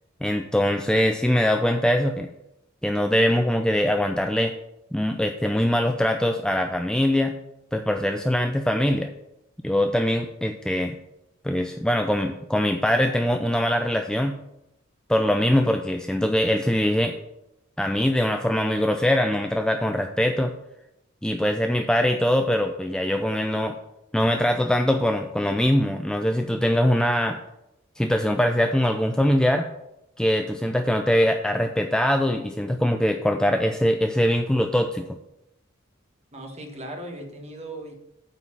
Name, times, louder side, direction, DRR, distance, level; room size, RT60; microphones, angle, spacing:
voice 1, 0.2-2.3 2.8-4.6 4.9-7.3 7.7-9.1 9.6-11.0 11.4-14.4 15.1-17.2 17.8-20.5 21.2-23.8 24.1-27.4 28.0-29.7 30.2-35.1, equal, 5° left, 5 dB, 0.4 m, -22 dB
voice 2, 36.3-37.9, right 1 dB, 30° right, 3 dB, 1.3 m, -37 dB
9.0 x 4.1 x 7.3 m, 0.86 s
head